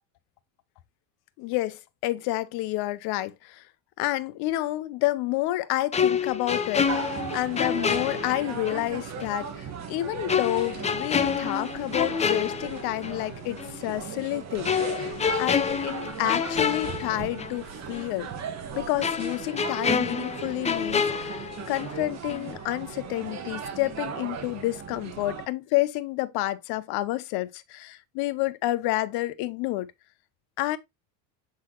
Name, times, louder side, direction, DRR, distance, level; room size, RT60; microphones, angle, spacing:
voice 1, 1.4-3.6 4.0-15.1 15.4-18.3 18.7-29.9 30.6-30.8, left 17 dB, 65° left, 0.9 m, -29 dB
sound 1, 5.9-8.9 9.2-9.3 10.3-13.2 13.6-13.8 14.6-17.6 17.9-18.1 19.0-22.0 22.3-22.5, left 6 dB, 15° left, 0.6 m, -28 dB
sound 2, 6.9-25.5, right 6 dB, 40° right, 1.4 m, -37 dB
7.7 x 4.0 x 3.0 m
supercardioid pair, 120°, 41 cm